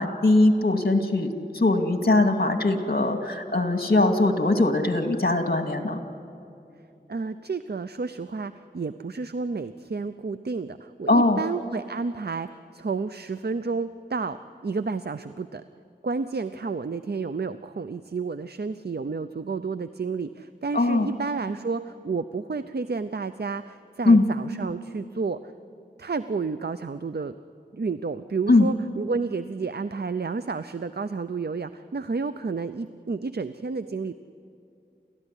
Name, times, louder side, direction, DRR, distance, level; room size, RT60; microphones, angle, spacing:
voice 1, 0.0-6.0 11.1-11.4 20.7-21.1 24.1-24.2 28.5-28.7, left 2 dB, 55° left, 5 dB, 2.3 m, -21 dB
voice 2, 7.1-14.4 14.6-15.6 16.0-25.5 26.0-27.3 27.7-34.1, right 4 dB, 60° right, 11 dB, 0.6 m, -31 dB
29.5 x 14.0 x 9.9 m, 2.6 s
wide cardioid pair, 45°, 19 cm